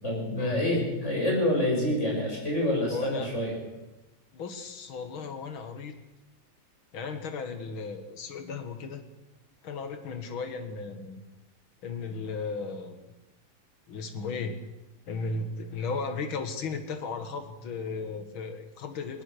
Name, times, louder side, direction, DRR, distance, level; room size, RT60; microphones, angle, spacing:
voice 1, 0.0-3.5, left 1 dB, 35° left, -2 dB, 7.9 m, -27 dB
voice 2, 2.9-3.3 4.3-5.9 6.9-9.1 9.6-11.2 11.8-13.2 13.9-14.6 15.1-19.2, left 4 dB, 75° left, 7 dB, 2.7 m, -35 dB
21.0 x 19.5 x 6.8 m, 1.0 s
omnidirectional pair, 2.2 m